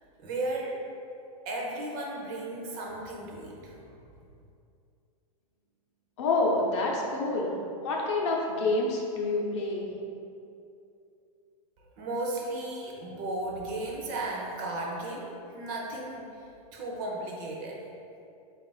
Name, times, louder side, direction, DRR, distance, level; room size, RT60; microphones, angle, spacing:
voice 1, 0.2-0.8 1.5-3.8 12.0-16.4 16.7-17.8, right 2 dB, 30° right, -2 dB, 0.5 m, -35 dB
voice 2, 6.2-7.5 7.8-9.9, left 2 dB, 50° left, -1 dB, 0.6 m, -27 dB
3.7 x 2.4 x 3.9 m, 2.6 s
supercardioid pair, 165°, 19 cm